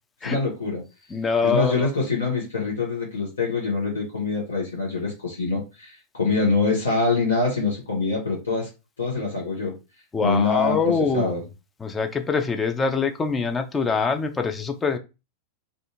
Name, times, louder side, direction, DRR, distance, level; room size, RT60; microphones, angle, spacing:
voice 1, 0.2-0.8 1.4-8.7 9.0-9.7 10.2-11.4, left 4 dB, 70° left, -4 dB, 0.9 m, -25 dB
voice 2, 1.1-1.9 10.1-11.3 11.8-15.0, left 4 dB, 15° left, 5 dB, 0.4 m, -24 dB
2.5 x 2.4 x 2.7 m, 0.28 s
figure-of-eight pair, 90°, 0 cm